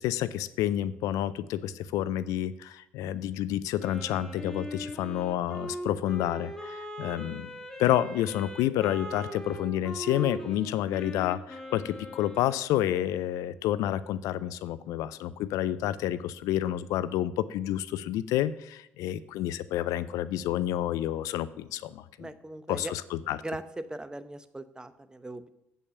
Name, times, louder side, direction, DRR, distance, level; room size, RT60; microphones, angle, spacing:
voice 1, 0.0-7.5 7.8-22.3 22.7-23.4, left 12 dB, 70° left, 16 dB, 0.4 m, -29 dB
Wind instrument woodwind instrument, 3.8-12.7, equal, 10° left, 1.6 m, -40 dB
voice 2, 22.2-22.9 23.4-25.5, right 2 dB, 15° right, 12 dB, 0.8 m, -39 dB
8.1 x 5.6 x 7.0 m, 0.81 s
hypercardioid pair, 55°, 6 cm